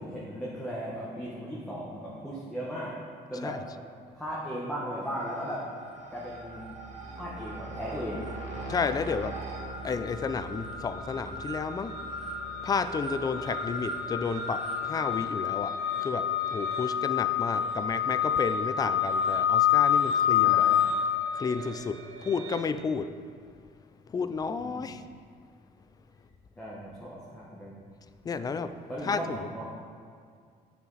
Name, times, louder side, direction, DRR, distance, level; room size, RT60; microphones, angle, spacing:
voice 1, 0.0-3.0 3.3-3.6 4.1-5.7 6.1-6.6 7.1-8.3 20.4-20.8 24.6-24.9 26.6-27.7 28.9-29.6, equal, 5° left, -6 dB, 1.1 m, -37 dB
sound 1, 5.1-5.7 6.0-22.6, left 8 dB, 40° right, 1.1 m, -29 dB
sound 2, 6.0-14.9, right 1 dB, 55° left, 0.9 m, -44 dB
voice 2, 8.7-9.4 9.8-11.9 12.6-20.6 21.3-23.1 24.1-25.0 28.2-28.7 29.0-29.4, left 5 dB, 20° left, 11 dB, 0.3 m, -32 dB
9.0 x 5.1 x 4.0 m, 2.1 s
cardioid pair, 110°, 17 cm